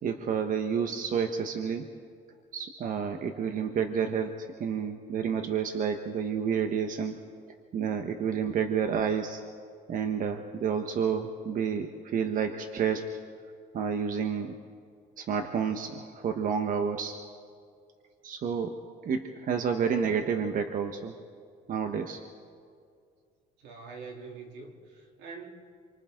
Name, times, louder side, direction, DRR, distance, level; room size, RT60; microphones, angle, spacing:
voice 1, 0.0-1.9 2.5-7.2 7.7-9.4 9.9-13.1 13.7-14.6 15.2-17.1 18.2-21.1 21.7-22.2, right 7 dB, 55° right, 5 dB, 1.3 m, -30 dB
voice 2, 23.6-25.5, right 4 dB, 85° right, 1 dB, 3.2 m, -44 dB
29.5 x 24.5 x 3.9 m, 2.2 s
cardioid pair, 110°, 17 cm